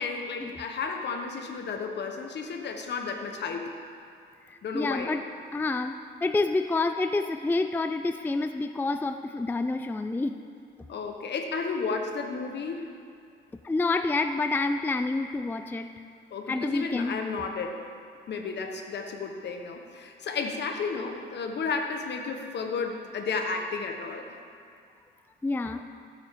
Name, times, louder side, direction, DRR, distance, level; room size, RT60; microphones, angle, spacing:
voice 1, 0.0-3.7 4.6-5.1 10.9-12.9 16.3-17.8 18.3-24.4, left 4 dB, 60° left, 4 dB, 1.3 m, -33 dB
voice 2, 4.5-5.2 5.5-10.4 13.6-15.9 16.5-17.2 25.4-25.8, left 3 dB, 10° left, 8 dB, 0.4 m, -28 dB
16.0 x 8.0 x 3.8 m, 2.3 s
cardioid pair, 90°, 20 cm